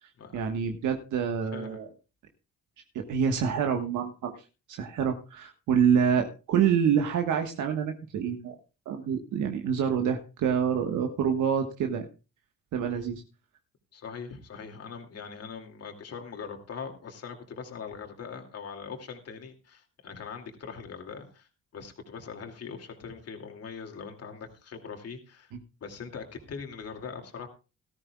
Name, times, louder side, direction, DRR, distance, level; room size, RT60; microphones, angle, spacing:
voice 1, 0.0-1.9 2.9-4.3 4.7-8.5 8.8-12.1 12.7-13.2 25.5-25.6, right 7 dB, 80° right, 4 dB, 1.4 m, -27 dB
voice 2, 13.9-25.5 25.8-27.5, left 6 dB, 55° left, 4 dB, 2.5 m, -41 dB
18.5 x 13.5 x 2.3 m, 0.31 s
cardioid pair, 90°, 30 cm